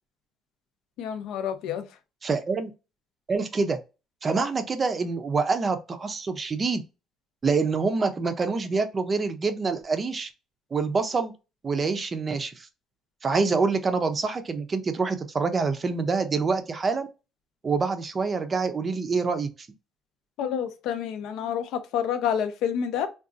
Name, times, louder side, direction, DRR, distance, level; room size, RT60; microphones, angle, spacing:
voice 1, 1.0-1.9 20.4-23.1, left 8 dB, 85° left, 0.5 m, -28 dB
voice 2, 2.2-2.7 3.3-3.8 4.2-6.8 7.4-10.3 10.7-11.3 11.6-12.7 13.2-17.1 17.6-19.5, right 4 dB, 25° right, 0.4 m, -26 dB
3.7 x 2.3 x 2.4 m
cardioid pair, 165°, 0 cm